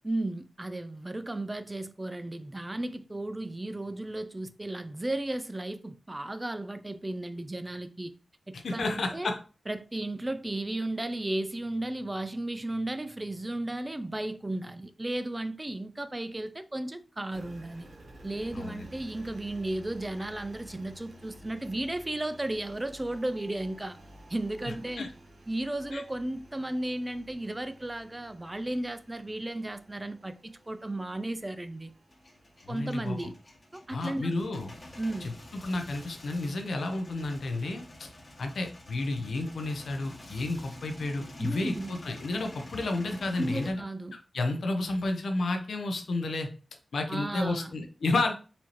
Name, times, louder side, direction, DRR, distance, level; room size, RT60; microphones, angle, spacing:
voice 1, 0.0-8.1 8.5-9.3 9.7-17.9 18.2-24.0 24.3-25.1 25.5-31.9 32.7-33.4 33.7-34.3 35.0-35.3 41.4-42.0 43.4-44.1 47.1-47.7, right 1 dB, 25° right, 0.4 m, -34 dB
voice 2, 8.5-9.4 18.5-18.9 25.0-25.1 25.9-26.0 32.6-33.3 33.9-34.7 35.2-35.3 35.6-37.8 38.4-43.8 44.3-46.5 46.9-48.3, left 2 dB, 80° left, 0.6 m, -31 dB
Engine, 17.3-35.3, equal, 70° right, 1.2 m, -53 dB
Male speech man speaking / Vehicle / Engine starting, 32.1-43.7, left 1 dB, 40° left, 1.1 m, -49 dB
4.2 x 2.7 x 3.0 m
cardioid pair, 50°, 0 cm